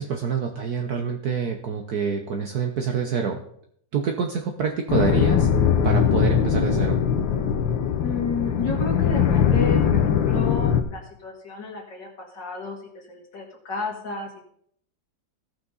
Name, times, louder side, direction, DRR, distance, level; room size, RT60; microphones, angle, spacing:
voice 1, 0.0-3.4 3.9-5.5 5.8-7.0, right 6 dB, 60° right, 3 dB, 1.3 m, -26 dB
sound 1, 4.9-10.8, left 8 dB, 85° left, 1.7 m, -21 dB
voice 2, 8.0-14.3, left 3 dB, 70° left, -2 dB, 2.6 m, -32 dB
17.0 x 6.0 x 4.0 m, 0.66 s
omnidirectional pair, 2.1 m